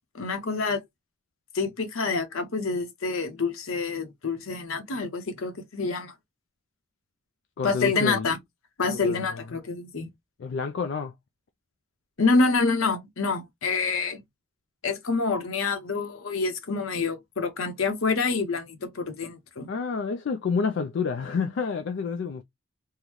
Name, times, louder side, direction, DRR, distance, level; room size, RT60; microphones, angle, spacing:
voice 1, 0.1-0.8 1.5-6.1 7.6-8.4 8.8-10.1 12.2-14.2 14.8-19.7, left 4 dB, 75° left, 0.8 m, -27 dB
voice 2, 7.6-8.3 8.8-9.4 10.4-11.1 19.7-22.4, left 5 dB, 55° left, 0.3 m, -29 dB
3.7 x 2.1 x 2.9 m
head